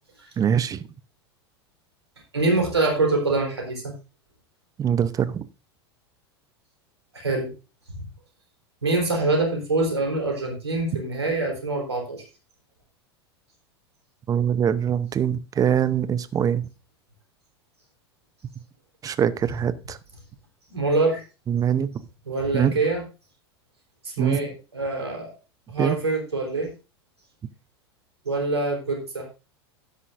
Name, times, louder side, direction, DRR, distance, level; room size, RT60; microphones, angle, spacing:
voice 1, 0.4-0.8 4.8-5.5 14.3-16.7 19.0-20.0 21.5-21.9 22.5-22.8 24.2-24.5 25.8-26.0, right 8 dB, 25° right, 0.7 m, -23 dB
voice 2, 2.3-3.9 7.1-7.5 7.9-8.0 8.8-12.2 20.7-21.2 22.3-23.0 24.0-25.3 25.7-26.7 28.2-29.3, right 2 dB, 85° right, 3.8 m, -25 dB
12.5 x 9.8 x 2.6 m
figure-of-eight pair, 85°, 14 cm